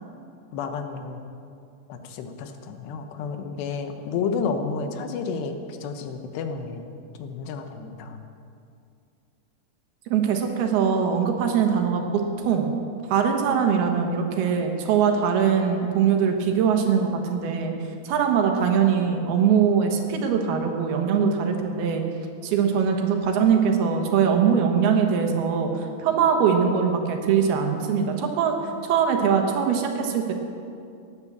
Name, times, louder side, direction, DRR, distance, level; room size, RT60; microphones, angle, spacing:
voice 1, 0.5-1.2 1.9-6.9 7.2-8.2, left 5 dB, 85° left, 6 dB, 3.2 m, -31 dB
voice 2, 10.1-12.7 13.1-17.7 18.1-22.0 22.4-28.5 28.8-30.3, right 7 dB, 75° right, 4 dB, 3.1 m, -22 dB
17.0 x 10.0 x 7.1 m, 2.5 s
omnidirectional pair, 4.7 m